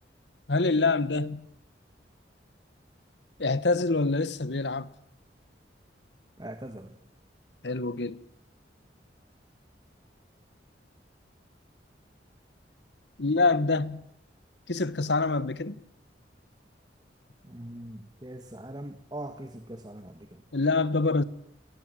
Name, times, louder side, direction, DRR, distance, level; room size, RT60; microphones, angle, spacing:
voice 1, 0.5-1.5 3.4-4.9 7.6-8.2 13.2-14.0 14.7-15.8 20.5-21.2, left 3 dB, 75° left, 1.3 m, -26 dB
voice 2, 6.4-6.9 17.5-20.3, right 1 dB, 25° right, 1.6 m, -41 dB
29.5 x 20.0 x 7.8 m
head